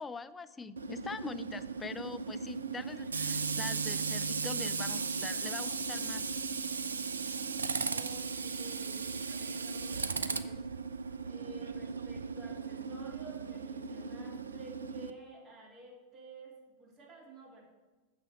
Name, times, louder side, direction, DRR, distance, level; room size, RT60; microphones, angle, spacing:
voice 1, 0.0-6.3, left 4 dB, 15° left, 13 dB, 0.4 m, -43 dB
Tools, 0.8-15.1, right 5 dB, 75° right, 0.4 m, -36 dB
voice 2, 7.9-10.7 11.2-17.6, right 1 dB, 25° right, -4 dB, 3.3 m, -52 dB
6.9 x 5.9 x 6.8 m, 1.2 s
figure-of-eight pair, 90°, 0 cm